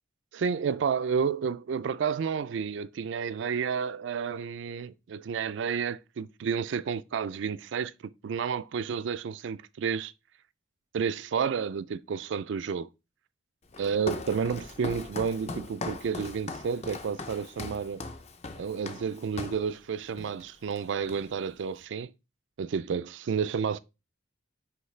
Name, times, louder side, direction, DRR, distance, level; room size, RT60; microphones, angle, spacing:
voice 1, 0.3-7.9 8.2-10.1 10.9-12.9 13.8-18.0 18.6-22.1 22.6-23.8, right 6 dB, 70° right, 0.3 m, -31 dB
Walk footsteps, 13.7-19.7 20.2-20.4 20.7-21.5, left 3 dB, 35° left, 0.5 m, -39 dB
9.4 x 3.1 x 3.2 m
head